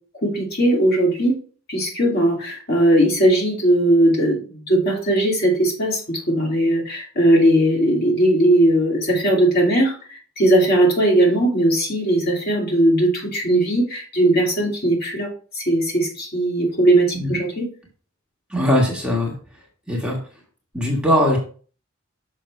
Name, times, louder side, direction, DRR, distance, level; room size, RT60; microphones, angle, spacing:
voice 1, 0.2-1.4 1.7-15.3 15.5-17.7, right 1 dB, 50° left, -2 dB, 2.6 m, -18 dB
voice 2, 18.5-19.4 19.9-20.2 20.7-21.4, equal, 5° right, -3 dB, 1.4 m, -20 dB
6.6 x 5.8 x 3.2 m, 0.41 s
head